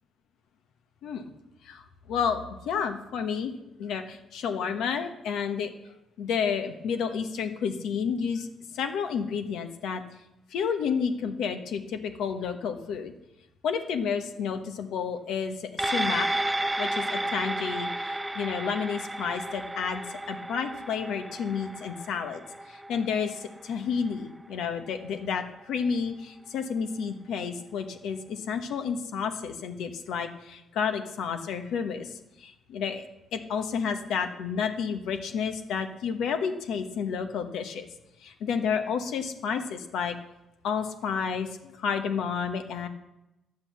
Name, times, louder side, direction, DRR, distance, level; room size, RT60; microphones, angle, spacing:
voice 1, 1.6-3.5 3.8-5.7 6.2-8.5 8.7-10.0 10.5-13.1 13.6-16.3 16.8-22.4 22.7-33.1 33.3-37.8 38.2-40.2 40.6-42.9, left 6 dB, 80° left, 7 dB, 1.1 m, -31 dB
sound 1, 15.8-24.5 24.9-25.0, right 1 dB, 10° right, 0.4 m, -32 dB
10.5 x 7.7 x 7.4 m, 0.93 s
cardioid pair, 90°, 0 cm